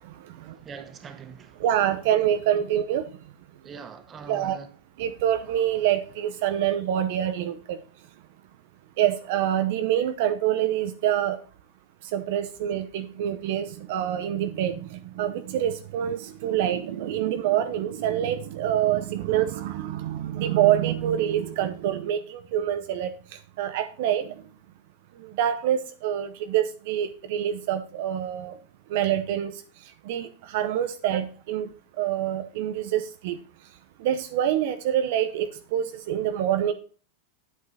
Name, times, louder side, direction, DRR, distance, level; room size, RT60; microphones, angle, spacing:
voice 1, 0.4-1.6 3.6-4.7, right 6 dB, 25° right, 1.2 m, -42 dB
voice 2, 1.6-3.0 4.3-4.6 5.0-7.8 9.0-11.4 12.1-23.1 23.6-24.3 25.4-28.5 28.9-29.6 30.1-31.7 32.0-33.4 34.0-36.7, right 11 dB, 65° right, 0.8 m, -26 dB
8.2 x 7.8 x 4.1 m
supercardioid pair, 130°, 0 cm